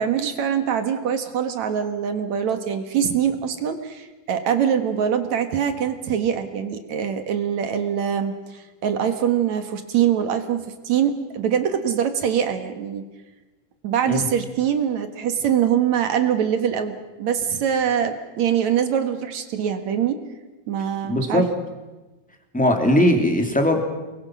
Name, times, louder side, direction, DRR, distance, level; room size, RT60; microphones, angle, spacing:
voice 1, 0.0-13.0 13.8-20.2 20.7-21.4, right 8 dB, 55° right, 8 dB, 2.4 m, -23 dB
voice 2, 21.0-21.4 22.5-23.8, left 1 dB, ahead, 3 dB, 2.2 m, -19 dB
29.5 x 22.5 x 6.2 m, 1.1 s
omnidirectional pair, 4.4 m